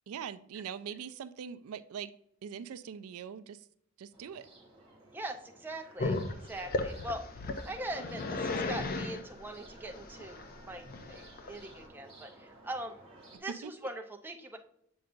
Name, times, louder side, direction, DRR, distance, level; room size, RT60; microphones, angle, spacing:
voice 1, 0.1-2.1 2.4-3.7 4.0-4.5 13.3-13.7, right 7 dB, 75° right, 14 dB, 0.4 m, -42 dB
sound 1, 4.1-13.4, right 1 dB, 30° right, 2.1 m, -55 dB
voice 2, 5.1-10.4 10.7-13.0 13.4-14.6, right 1 dB, 10° right, 3 dB, 0.5 m, -42 dB
Growling, 6.0-11.8, left 2 dB, 40° left, 0.5 m, -36 dB
7.8 x 5.2 x 2.5 m, 0.71 s
head